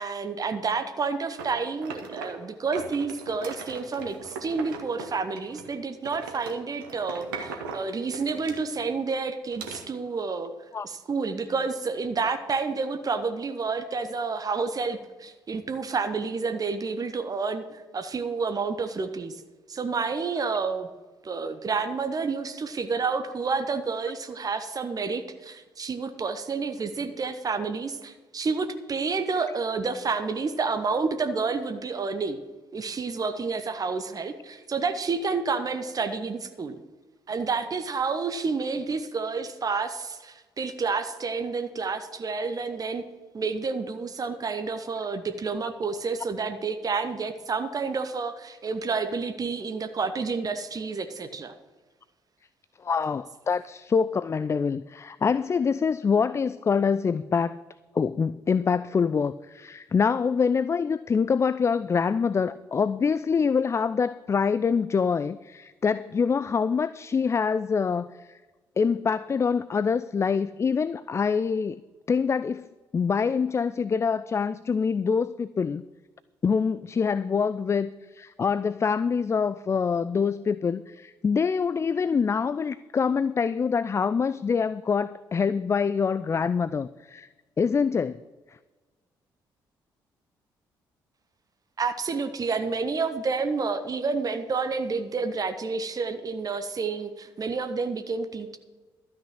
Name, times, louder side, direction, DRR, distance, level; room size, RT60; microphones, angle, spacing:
voice 1, 0.0-10.5 10.8-19.4 19.7-20.9 21.2-32.4 32.7-36.8 37.3-43.0 43.3-51.5 91.8-98.6, right 4 dB, 35° right, 8 dB, 0.9 m, -29 dB
sound 1, 1.4-2.5 2.7-5.7 6.0-9.0 9.5-9.8, right 5 dB, 75° right, 1.1 m, -39 dB
voice 2, 52.8-57.6 57.9-68.4 68.8-71.8 72.1-72.7 72.9-75.8 76.4-87.3 87.6-88.2, left 5 dB, 25° left, 17 dB, 0.3 m, -25 dB
12.5 x 6.0 x 7.9 m, 1.3 s
figure-of-eight pair, 40°, 11 cm